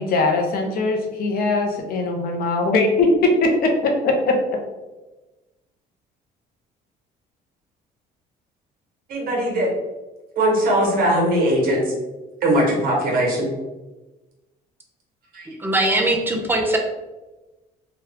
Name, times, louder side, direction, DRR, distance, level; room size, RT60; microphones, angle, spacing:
voice 1, 0.0-4.4, left 2 dB, 60° left, 3 dB, 0.7 m, -20 dB
voice 2, 9.1-9.7 10.4-11.9 12.4-13.5 15.3-15.5, right 1 dB, 60° right, -2 dB, 1.2 m, -20 dB
voice 3, 15.5-16.8, right 1 dB, 10° right, 2 dB, 0.6 m, -21 dB
3.0 x 2.3 x 3.3 m, 1.1 s
cardioid pair, 110°, 17 cm